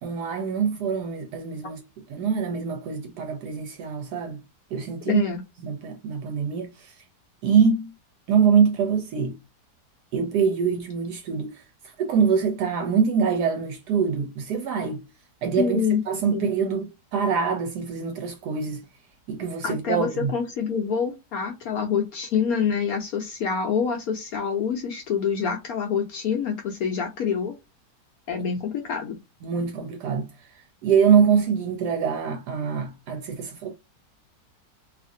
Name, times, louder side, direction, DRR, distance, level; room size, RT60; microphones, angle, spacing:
voice 1, 0.0-1.8 2.1-4.4 4.7-5.2 5.6-6.9 7.4-7.9 8.3-9.4 10.1-15.0 15.4-18.8 19.3-20.3 29.4-30.3 30.5-33.7, right 6 dB, 75° right, 1.1 m, -24 dB
voice 2, 5.1-5.4 15.6-16.0 16.3-16.5 19.6-27.5 28.3-29.2, left 7 dB, 70° left, 1.0 m, -26 dB
2.8 x 2.5 x 2.5 m
omnidirectional pair, 1.9 m